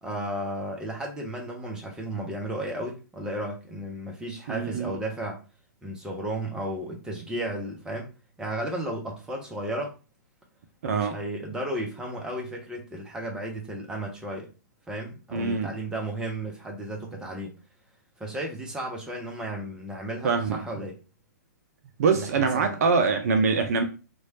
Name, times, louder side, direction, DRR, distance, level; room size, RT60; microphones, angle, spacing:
voice 1, 0.0-5.4 5.8-8.1 8.4-9.9 10.8-14.5 14.9-17.5 18.2-21.0 22.1-22.8, right 1 dB, 5° right, 0.6 m, -34 dB
voice 2, 4.5-4.9 10.8-11.2 15.3-15.8 20.2-20.6 22.0-23.8, right 5 dB, 50° right, 0.4 m, -24 dB
3.0 x 2.2 x 2.8 m
figure-of-eight pair, 120°, 10 cm